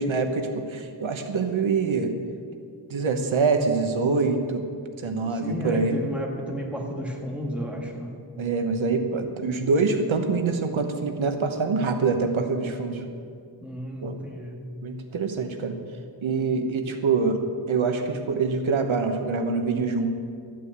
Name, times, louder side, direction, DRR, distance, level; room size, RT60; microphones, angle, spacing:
voice 1, 0.0-2.1 2.9-4.6 5.0-6.0 8.4-13.1 14.0-14.2 14.8-15.8 16.2-17.4 17.7-20.1, right 4 dB, 75° right, 6 dB, 1.2 m, -25 dB
voice 2, 5.3-8.2 13.6-14.6, equal, ahead, -1 dB, 1.8 m, -32 dB
13.0 x 9.2 x 8.1 m, 2.3 s
wide cardioid pair, 170°, 48 cm